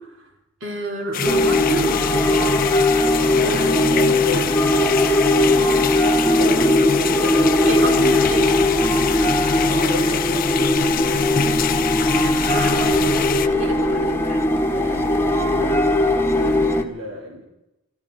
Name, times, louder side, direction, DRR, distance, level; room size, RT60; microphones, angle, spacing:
voice 1, 0.6-2.9 3.4-3.9 6.4-7.2 7.7-8.6 12.2-13.1 13.5-14.5, right 1 dB, 70° right, 1 dB, 3.7 m, -29 dB
sound 1, 1.1-13.5, left 7 dB, 45° left, 0.5 m, -25 dB
sound 2, 1.2-16.8, left 1 dB, 10° left, 1.0 m, -19 dB
voice 2, 3.2-5.8 6.3-6.8 7.1-8.5 9.6-11.4 14.7-17.5, equal, 90° right, -1 dB, 3.0 m, -33 dB
25.5 x 13.0 x 4.0 m, 0.90 s
head